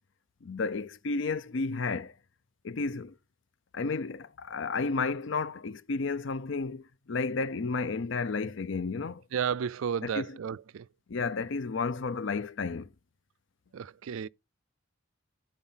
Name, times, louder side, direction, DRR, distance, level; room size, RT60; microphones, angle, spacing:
voice 1, 0.4-2.1 2.6-3.2 3.7-9.2 10.0-10.4 11.1-12.9, left 4 dB, 60° left, 0.5 m, -32 dB
voice 2, 9.3-10.9 13.7-14.3, right 7 dB, 80° right, 0.4 m, -32 dB
10.5 x 4.3 x 5.6 m
head